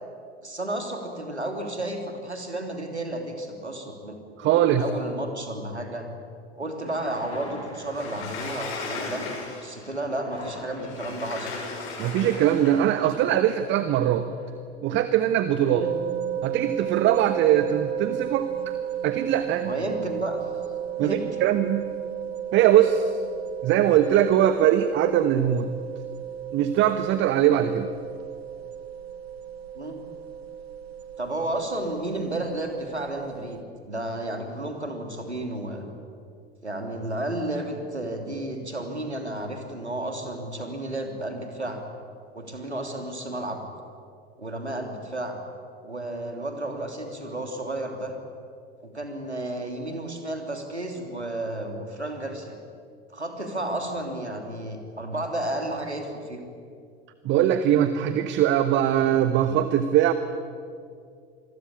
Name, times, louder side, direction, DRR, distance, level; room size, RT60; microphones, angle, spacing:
voice 1, 0.4-4.5 4.8-6.1 6.6-9.3 9.6-11.5 15.6-15.9 19.6-20.4 21.0-21.3 29.7-30.0 31.2-35.9 36.6-41.8 42.3-43.6 44.4-45.4 45.8-48.1 48.8-52.5 53.1-56.4, right 1 dB, 85° right, 4 dB, 3.1 m, -32 dB
voice 2, 4.4-4.8 12.0-14.3 14.8-15.8 16.4-18.7 19.0-19.7 21.0-21.9 22.5-23.2 23.6-25.7 26.5-27.9 57.2-60.1, right 11 dB, 35° right, 10 dB, 1.3 m, -21 dB
sound 1, 6.8-14.5, left 1 dB, 80° left, 6.2 m, -47 dB
Sliding door, 7.9-9.9 10.8-13.0, left 4 dB, 40° left, 7.6 m, -36 dB
sound 2, 15.8-33.6, right 10 dB, 70° right, 1.3 m, -34 dB
27.0 x 21.5 x 8.7 m, 2.3 s
figure-of-eight pair, 80°, 32 cm